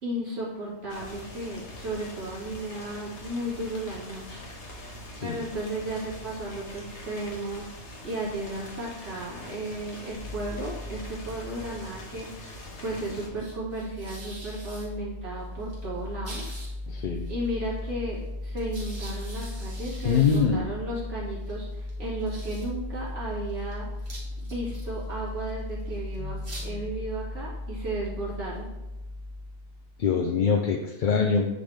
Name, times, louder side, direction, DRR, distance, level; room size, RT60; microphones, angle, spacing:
voice 1, 0.0-4.8 5.2-7.6 8.0-12.5 12.8-16.4 17.3-23.9 24.4-28.7, right 1 dB, 85° right, -7 dB, 2.6 m, -34 dB
sound 1, 0.9-13.3, left 1 dB, 80° left, 1.5 m, -43 dB
sound 2, 10.1-30.0, left 1 dB, 65° right, 2.0 m, -37 dB
voice 2, 16.9-17.3 20.0-20.6 26.2-26.4 30.0-31.5, left 6 dB, 55° left, 2 dB, 0.6 m, -24 dB
8.6 x 3.9 x 3.4 m, 0.99 s
omnidirectional pair, 1.2 m